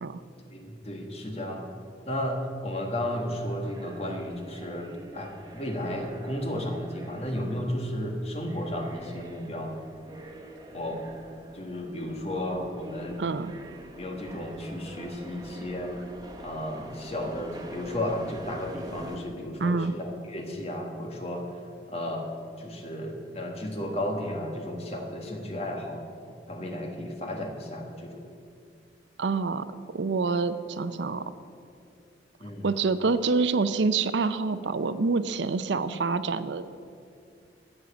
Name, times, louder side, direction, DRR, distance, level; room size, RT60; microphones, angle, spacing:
voice 1, 0.5-1.7 2.1-9.9 10.7-11.0 11.5-13.2 14.0-15.9 16.4-21.6 21.9-22.3 22.6-26.0 26.5-28.2 32.4-32.7, left 1 dB, 35° left, 2 dB, 1.6 m, -33 dB
sound 1, 3.2-19.2, right 1 dB, 20° right, 1.0 m, -46 dB
voice 2, 13.2-13.5 19.6-19.9 29.2-31.2 32.6-36.8, right 4 dB, 80° right, 13 dB, 0.6 m, -27 dB
13.5 x 7.7 x 7.1 m, 2.4 s
head